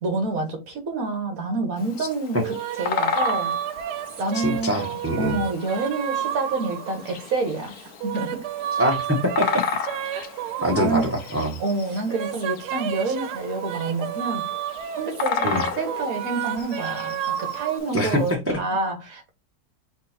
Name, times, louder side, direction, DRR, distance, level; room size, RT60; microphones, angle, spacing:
voice 1, 0.0-3.6 4.2-7.8 8.0-8.5 10.1-10.3 10.6-11.2 11.6-14.5 14.9-19.3, right 3 dB, 65° right, 1.6 m, -28 dB
Bird vocalization bird call bird song, 1.8-18.3, left 6 dB, 70° left, 1.2 m, -34 dB
sound 1, 2.4-7.3 7.8-11.5 11.9-17.8, right 10 dB, 85° right, 1.2 m, -31 dB
voice 2, 4.4-5.4 8.8-9.6 10.6-11.6 15.4-15.6 17.9-18.4, equal, 15° right, 0.5 m, -24 dB
4.5 x 2.8 x 4.2 m
omnidirectional pair, 1.7 m